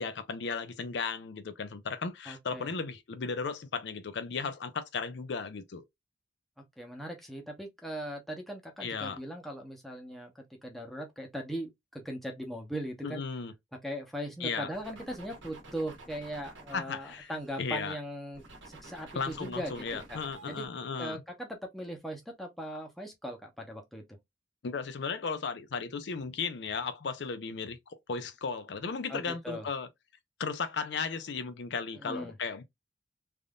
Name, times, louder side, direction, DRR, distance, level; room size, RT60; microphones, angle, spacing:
voice 1, 0.0-5.8 8.8-9.2 13.0-13.5 14.4-14.7 16.7-17.3 17.6-18.0 19.1-21.2 24.6-29.9 30.4-32.6, left 5 dB, 65° left, 0.5 m, -35 dB
voice 2, 2.3-2.7 6.8-13.2 13.8-20.7 21.0-24.2 29.1-29.7 32.0-32.3, equal, ahead, 0.7 m, -39 dB
sound 1, 14.7-17.9 18.3-20.7, right 2 dB, 80° right, 1.2 m, -51 dB
3.4 x 2.6 x 2.3 m
head